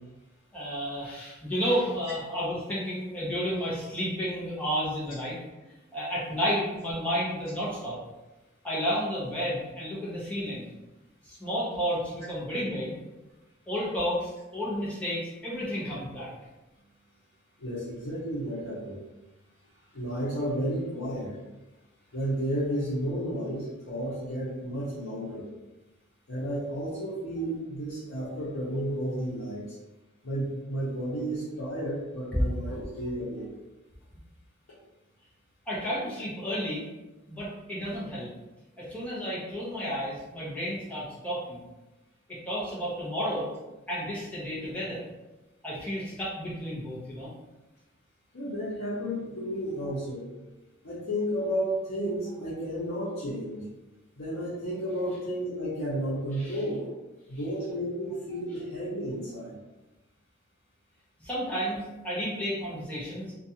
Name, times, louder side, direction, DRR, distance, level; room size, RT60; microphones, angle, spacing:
voice 1, 0.5-5.4 5.6-8.0 8.6-10.7 11.2-13.0 13.7-16.3 32.7-32.8 35.7-36.9 37.3-38.3 38.8-41.7 42.3-43.5 43.9-45.0 45.6-47.3 56.3-56.6 61.2-63.3, equal, 5° left, -8 dB, 0.7 m, -32 dB
voice 2, 17.6-18.9 19.9-21.3 22.1-25.4 26.3-29.6 30.2-33.5 48.3-50.2 50.8-53.6 54.2-56.8 57.3-59.5, equal, 70° left, -10 dB, 0.8 m, -32 dB
2.5 x 2.3 x 2.7 m, 1.1 s
head